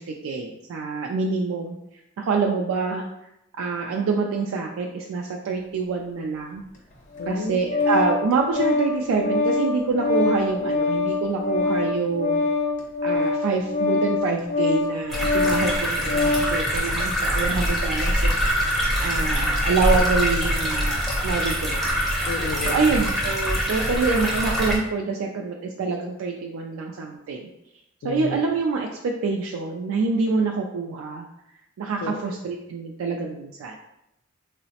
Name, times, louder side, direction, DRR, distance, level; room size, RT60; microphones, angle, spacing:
voice 1, 0.0-1.8 2.2-3.1 3.5-6.6 7.3-12.5 13.0-18.7 19.0-21.9 22.6-27.5 28.0-31.3 31.8-33.8, right 4 dB, 75° right, 1 dB, 0.3 m, -26 dB
Organ, 7.1-16.6, left 3 dB, 35° left, 0.7 m, -24 dB
voice 2, 7.2-7.6 22.3-23.0 28.0-28.4 32.0-32.3, left 3 dB, 60° left, 7 dB, 0.3 m, -32 dB
sound 1, 15.1-24.8, equal, ahead, 0.5 m, -24 dB
3.7 x 2.0 x 2.8 m, 0.85 s
head